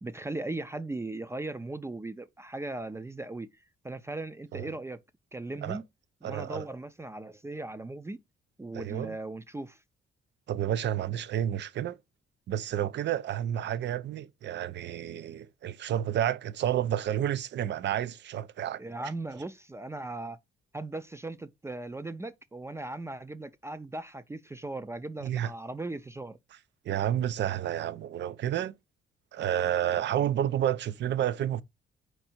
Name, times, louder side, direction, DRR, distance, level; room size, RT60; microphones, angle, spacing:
voice 1, 0.0-5.0 5.3-5.8 6.2-8.2 8.6-9.8 18.8-20.4 20.7-26.4, right 2 dB, 15° right, 0.4 m, -38 dB
voice 2, 6.2-6.6 8.7-9.2 10.5-12.0 12.5-18.8 25.2-25.5 26.8-28.7 29.3-31.6, right 11 dB, 60° right, 0.6 m, -30 dB
4.5 x 2.6 x 4.3 m
cardioid pair, 90°, 20 cm